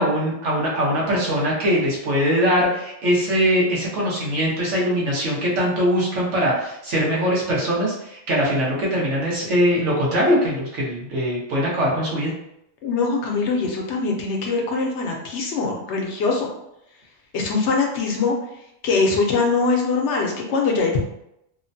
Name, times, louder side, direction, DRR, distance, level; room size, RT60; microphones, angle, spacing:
voice 1, 0.0-12.3, equal, 90° right, -4 dB, 1.2 m, -21 dB
voice 2, 12.8-16.5 17.3-18.3 18.8-21.0, left 4 dB, 75° left, 1 dB, 0.9 m, -22 dB
3.0 x 2.1 x 2.6 m, 0.81 s
omnidirectional pair, 1.2 m